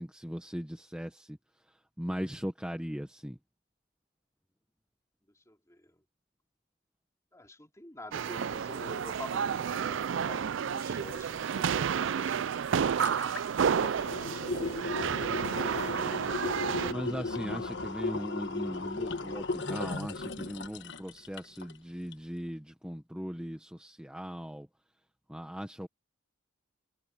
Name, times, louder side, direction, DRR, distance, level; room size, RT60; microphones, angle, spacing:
voice 1, 0.0-1.4 2.0-3.4 16.9-24.7 25.3-25.9, equal, 5° right, 1.1 m, -38 dB
voice 2, 5.5-6.0 7.3-12.6 13.1-13.2 14.2-16.0, left 1 dB, 15° left, 3.5 m, -48 dB
sound 1, 8.1-16.9, right 7 dB, 60° right, 0.4 m, -31 dB
sound 2, 12.3-12.4 12.7-21.8 22.1-22.2, left 3 dB, 55° left, 1.3 m, -36 dB
head